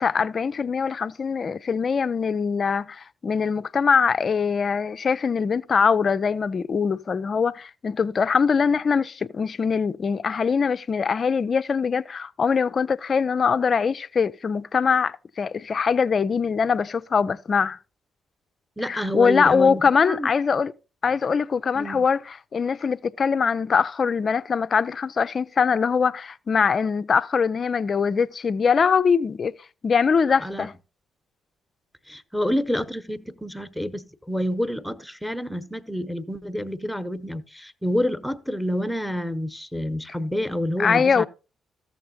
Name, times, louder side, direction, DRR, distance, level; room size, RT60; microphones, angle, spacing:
voice 1, 0.0-17.8 18.9-20.7 21.0-29.5 29.8-30.7 40.8-41.2, left 6 dB, 45° left, 0.4 m, -22 dB
voice 2, 18.8-20.3 21.8-22.0 30.4-30.7 32.1-41.3, equal, 5° left, 0.9 m, -28 dB
15.0 x 7.0 x 2.7 m
hypercardioid pair, 40°, 0 cm